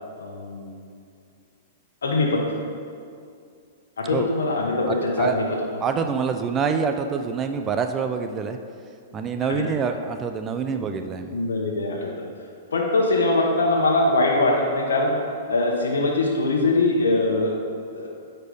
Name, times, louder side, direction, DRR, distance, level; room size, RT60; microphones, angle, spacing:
voice 1, 0.2-0.7 2.0-2.4 4.0-5.4 5.7-5.8 9.4-9.6 10.8-10.9 11.3-12.1 12.7-15.2 15.5-17.5 17.9-18.1, left 2 dB, 90° left, -1 dB, 1.0 m, -22 dB
voice 2, 4.9-5.4 5.8-8.6 9.1-11.3, right 6 dB, 25° right, 7 dB, 0.5 m, -26 dB
9.3 x 4.4 x 5.0 m, 2.3 s
hypercardioid pair, 125°, 0 cm